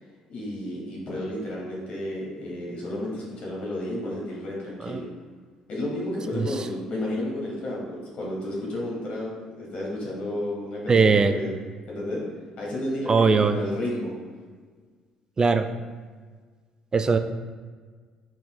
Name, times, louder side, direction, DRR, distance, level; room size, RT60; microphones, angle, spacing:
voice 1, 0.3-5.1 5.7-11.5 11.9-12.2 12.6-14.1, left 1 dB, 55° left, -4 dB, 1.4 m, -32 dB
voice 2, 10.9-11.3 13.1-13.6 15.4-15.7 16.9-17.2, right 4 dB, 30° right, 9 dB, 0.4 m, -19 dB
5.2 x 4.3 x 2.2 m, 1.5 s
hypercardioid pair, 50°, 3 cm